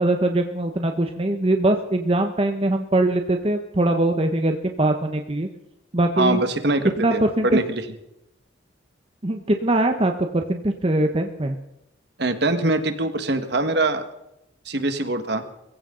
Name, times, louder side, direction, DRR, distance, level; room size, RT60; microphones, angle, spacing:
voice 1, 0.0-5.5 5.9-6.4 7.0-7.6 9.2-11.6, right 1 dB, 30° right, 5 dB, 1.0 m, -22 dB
voice 2, 6.2-7.8 12.2-14.0 14.7-15.4, right 2 dB, 60° right, 8 dB, 1.7 m, -23 dB
22.0 x 16.0 x 3.9 m, 0.85 s
head